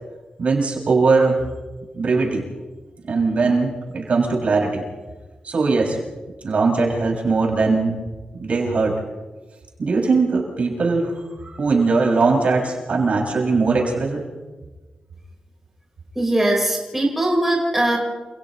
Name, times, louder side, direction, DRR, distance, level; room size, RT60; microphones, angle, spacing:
voice 1, 0.4-1.4 1.9-2.4 3.1-4.8 5.4-6.0 6.4-8.0 8.4-9.0 9.8-11.1 11.4-14.2, right 4 dB, 55° right, -2 dB, 6.7 m, -20 dB
voice 2, 16.1-18.0, right 1 dB, 10° right, -3 dB, 4.9 m, -20 dB
30.0 x 28.5 x 3.2 m, 1.3 s
wide cardioid pair, 135°, 3 cm